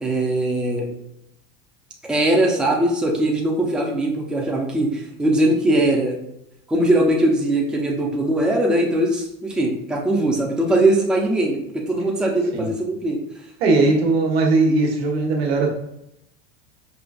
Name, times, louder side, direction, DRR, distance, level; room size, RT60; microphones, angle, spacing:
voice 1, 0.0-0.9 2.1-6.1 6.7-13.2 13.8-13.9, right 1 dB, 5° right, -1 dB, 0.6 m, -20 dB
voice 2, 13.6-15.7, right 3 dB, 80° right, 1 dB, 1.1 m, -19 dB
5.3 x 2.4 x 2.3 m, 0.81 s
supercardioid pair, 115°, 30 cm